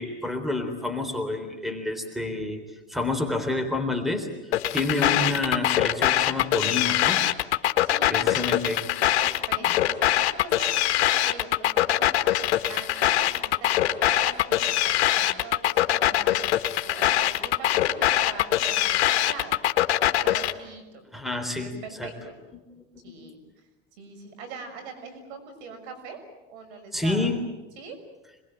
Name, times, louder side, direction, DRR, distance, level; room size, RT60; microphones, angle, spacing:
voice 1, 0.0-2.6 2.9-7.2 8.1-8.8 9.2-9.4 21.1-22.1 23.0-23.2 26.9-27.4, left 2 dB, ahead, 7 dB, 3.7 m, -29 dB
sound 1, 4.5-20.5, left 13 dB, 90° left, 1.7 m, -23 dB
voice 2, 7.8-8.3 9.5-16.4 16.8-19.6 20.1-21.0 21.6-22.3 23.0-23.4 24.0-26.2 26.5-27.3 27.8-28.0, right 4 dB, 75° right, 8 dB, 6.4 m, -42 dB
26.5 x 21.5 x 9.1 m, 1.1 s
supercardioid pair, 115°, 33 cm